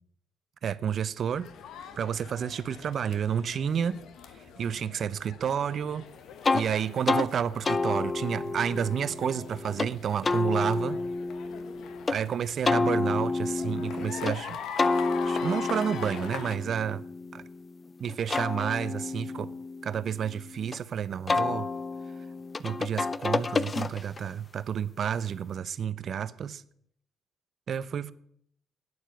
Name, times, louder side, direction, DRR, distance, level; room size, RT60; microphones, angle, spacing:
voice 1, 0.6-1.5 2.0-4.0 4.6-6.1 6.5-11.1 12.1-14.6 15.2-17.1 17.3-17.4 18.0-19.5 19.8-21.7 22.6-26.6 27.7-28.1, right 8 dB, 60° right, 0.7 m, -30 dB
sound 1, 1.3-16.6, left 7 dB, 75° left, 1.4 m, -43 dB
sound 2, 6.4-6.7 7.1-7.3 7.7-9.9 10.2-12.2 12.7-14.4 14.8-17.7 18.1-20.8 21.3-24.3, left 3 dB, 30° left, 0.6 m, -30 dB
11.5 x 9.7 x 8.3 m
cardioid pair, 90°, 0 cm